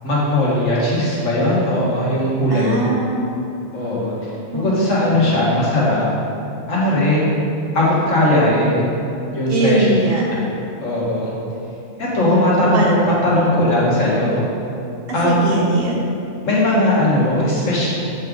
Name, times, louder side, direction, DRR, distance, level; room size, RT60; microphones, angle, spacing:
voice 1, 0.0-2.8 3.7-6.1 6.7-7.4 7.7-8.9 9.3-9.9 10.8-11.3 12.0-14.4 15.1-15.6 16.4-17.9, left 1 dB, 65° left, -7 dB, 1.9 m, -18 dB
voice 2, 2.5-3.3 4.5-5.0 9.5-10.3 12.3-12.9 15.2-16.0, right 2 dB, 50° right, -2 dB, 0.9 m, -21 dB
8.0 x 5.4 x 3.7 m, 2.8 s
omnidirectional pair, 1.4 m